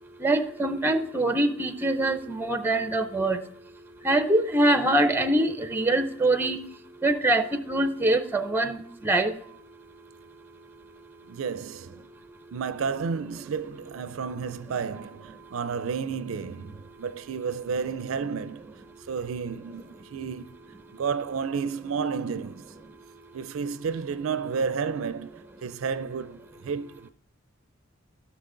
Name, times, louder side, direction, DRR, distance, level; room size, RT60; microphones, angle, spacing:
voice 1, 0.2-3.4 4.0-6.6 7.0-9.4, right 1 dB, 10° right, 0.6 m, -24 dB
voice 2, 11.3-12.1 12.5-20.6 20.9-22.7 23.3-27.1, right 5 dB, 90° right, 0.4 m, -32 dB
15.5 x 6.1 x 3.8 m
head